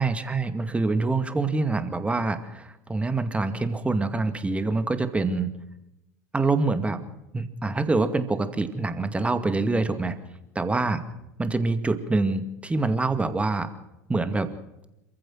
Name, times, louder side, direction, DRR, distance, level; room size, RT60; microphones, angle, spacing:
voice 1, 0.0-5.5 6.3-7.0 7.3-10.2 10.6-11.0 11.4-13.7 14.1-14.5, right 3 dB, 15° right, 9 dB, 2.2 m, -25 dB
27.5 x 15.0 x 6.4 m, 0.91 s
figure-of-eight pair, 75°, 9 cm